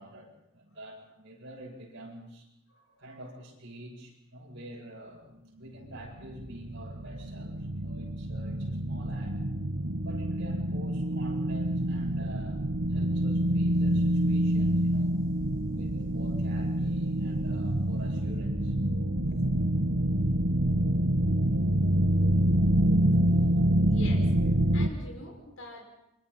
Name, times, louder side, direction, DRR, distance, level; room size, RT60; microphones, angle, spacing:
voice 1, 0.0-2.5 3.0-5.3 5.6-9.4 10.0-12.6 12.9-15.1 15.7-18.7 19.3-19.5, right 1 dB, 55° right, -1 dB, 7.6 m, -46 dB
voice 2, 2.7-3.0 23.8-25.8, left 1 dB, 70° left, 2 dB, 5.7 m, -45 dB
sound 1, 5.9-24.9, right 1 dB, 70° right, 1.3 m, -27 dB
28.5 x 26.0 x 4.2 m, 0.84 s
head